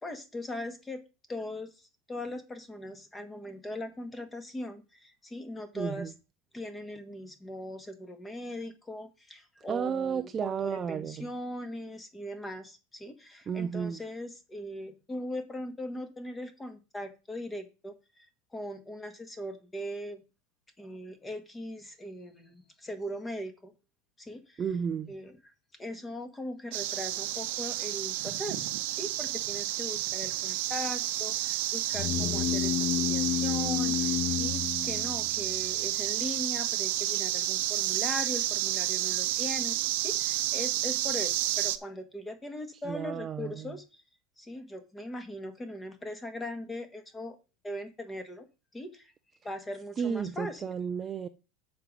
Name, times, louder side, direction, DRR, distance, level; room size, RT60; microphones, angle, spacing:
voice 1, 0.0-1.0 1.3-6.1 6.5-18.3 18.5-20.2 20.8-23.7 24.2-24.6 25.1-25.5 25.8-28.7 28.9-44.0 44.4-47.4 47.6-48.5 48.7-49.1 49.4-50.8, left 1 dB, 10° left, 1.6 m, -40 dB
voice 2, 5.8-6.1 9.7-11.3 13.5-14.0 24.6-25.1 42.9-43.5 50.0-51.3, right 7 dB, 25° right, 0.5 m, -32 dB
sound 1, 26.7-41.8, right 15 dB, 70° right, 0.8 m, -31 dB
sound 2, 31.9-35.6, left 12 dB, 50° left, 0.4 m, -30 dB
7.4 x 5.3 x 6.1 m
supercardioid pair, 140°, 0 cm